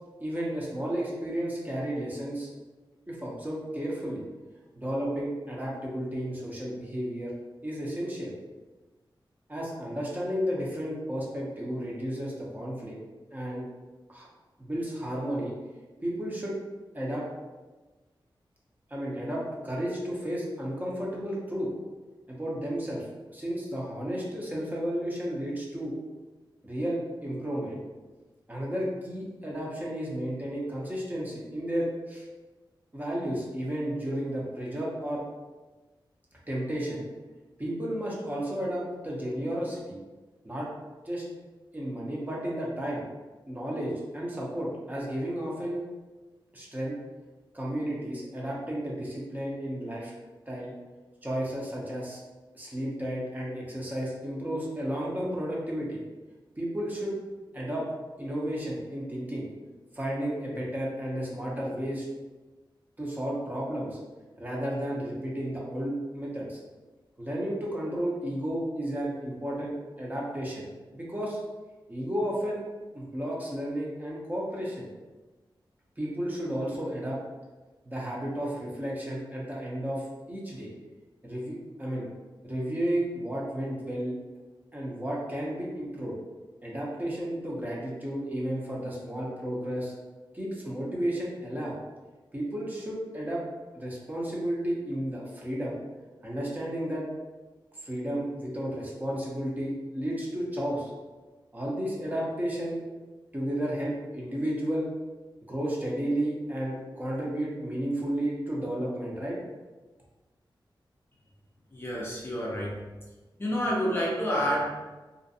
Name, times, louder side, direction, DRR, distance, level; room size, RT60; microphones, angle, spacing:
voice 1, 0.2-2.5 3.1-4.2 4.7-7.3 7.6-8.3 9.5-13.0 13.3-13.6 14.1-14.3 14.6-15.5 16.0-16.6 16.9-17.3 18.9-21.7 22.3-23.1 23.3-25.9 26.6-27.8 28.5-32.3 32.9-35.2 36.5-37.1 37.6-40.0 40.4-40.7 41.0-41.3 41.7-43.0 43.5-45.8 46.5-47.0 47.5-50.1 50.5-50.7 51.2-52.2 52.5-56.0 56.6-57.2 57.5-57.9 58.2-59.5 59.9-62.0 63.0-64.0 64.4-66.6 67.2-71.4 71.9-72.6 72.9-74.9 76.0-77.2 77.9-80.7 81.2-82.1 82.4-84.1 84.7-86.1 86.6-89.9 90.3-91.8 92.3-93.4 93.7-95.8 96.2-97.0 97.8-100.9 101.5-102.8 103.3-104.9 105.5-109.4, equal, 20° right, -5 dB, 0.6 m, -32 dB
voice 2, 111.7-112.8 113.4-114.7, equal, 25° left, -4 dB, 0.5 m, -28 dB
2.5 x 2.2 x 2.6 m, 1.2 s
wide cardioid pair, 95°, 9 cm